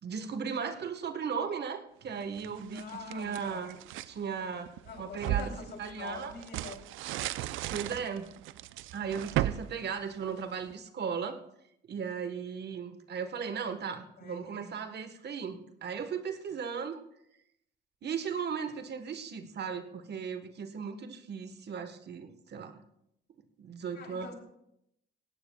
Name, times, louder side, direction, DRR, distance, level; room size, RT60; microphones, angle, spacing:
voice 1, 0.0-3.8 4.1-4.7 5.0-5.5 5.8-6.3 7.7-8.3 8.9-11.4 11.9-17.0 18.0-22.8 23.6-24.3, right 6 dB, 55° right, 8 dB, 1.3 m, -36 dB
sound 1, 2.2-4.1 4.7-10.7, right 13 dB, 85° right, 0.5 m, -36 dB
voice 2, 2.7-3.7 4.8-6.8 14.2-14.8 23.9-24.3, left 4 dB, 55° left, 2 dB, 3.1 m, -45 dB
18.0 x 16.5 x 2.3 m, 0.78 s
cardioid pair, 90°, 20 cm